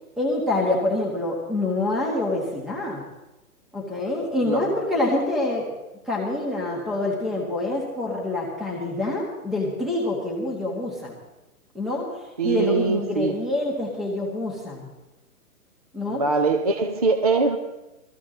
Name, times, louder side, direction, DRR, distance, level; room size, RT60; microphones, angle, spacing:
voice 1, 0.2-3.1 3.7-5.7 6.1-11.2 11.7-14.9 15.9-16.2, left 2 dB, ahead, -2 dB, 1.4 m, -26 dB
voice 2, 12.4-13.4 16.1-17.6, right 3 dB, 25° right, 7 dB, 0.4 m, -22 dB
19.0 x 14.5 x 3.8 m, 0.99 s
hypercardioid pair, 160°, 45 cm